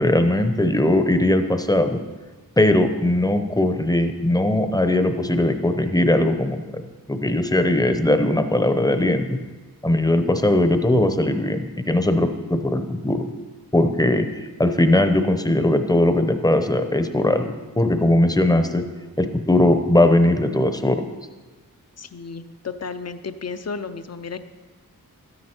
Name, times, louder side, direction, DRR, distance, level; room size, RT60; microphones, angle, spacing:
voice 1, 0.0-2.0 2.6-6.8 7.1-9.3 9.8-13.3 13.7-14.3 14.6-17.5 17.8-18.8 19.2-21.0, left 1 dB, 10° left, 8 dB, 0.7 m, -19 dB
voice 2, 22.0-24.4, left 5 dB, 45° left, 11 dB, 0.6 m, -33 dB
13.0 x 9.7 x 4.4 m, 1.3 s
wide cardioid pair, 110°, 35 cm